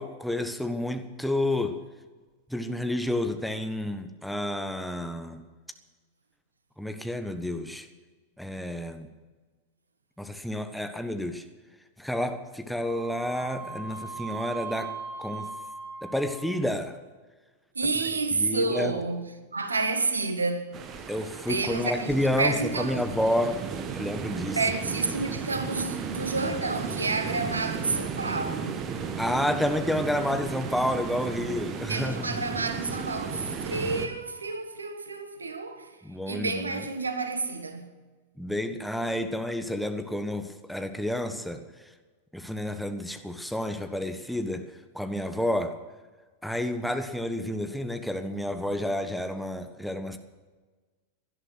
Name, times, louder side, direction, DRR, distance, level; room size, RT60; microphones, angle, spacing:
voice 1, 0.0-1.8 2.5-5.4 6.8-7.9 8.4-9.1 10.2-11.4 12.0-15.5 16.0-17.0 18.3-18.9 21.1-23.6 23.9-24.6 29.2-32.4 36.0-36.8 38.4-41.6 42.3-44.7 44.9-45.8 46.4-50.2, left 1 dB, ahead, 1.3 m, -30 dB
Wind instrument woodwind instrument, 12.8-16.8, right 4 dB, 90° left, 3.7 m, -39 dB
voice 2, 17.7-20.8 21.5-23.0 24.5-28.9 31.9-36.0 36.3-38.0, right 3 dB, 75° right, 1.5 m, -30 dB
sound 1, 20.7-34.1, right 6 dB, 30° right, 1.6 m, -35 dB
17.5 x 12.0 x 6.2 m
figure-of-eight pair, 90°, 0 cm